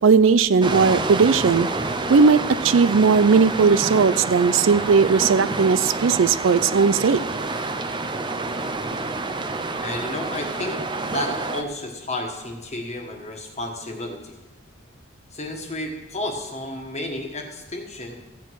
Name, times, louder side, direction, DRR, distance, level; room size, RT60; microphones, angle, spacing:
voice 1, 0.0-1.7 2.1-7.2, right 5 dB, 65° right, 14 dB, 0.4 m, -17 dB
sound 1, 0.6-11.6, right 3 dB, 25° right, 0.6 m, -28 dB
voice 2, 9.8-14.3 15.3-18.2, left 1 dB, 35° left, 2 dB, 1.5 m, -32 dB
14.5 x 8.4 x 4.7 m, 1.1 s
head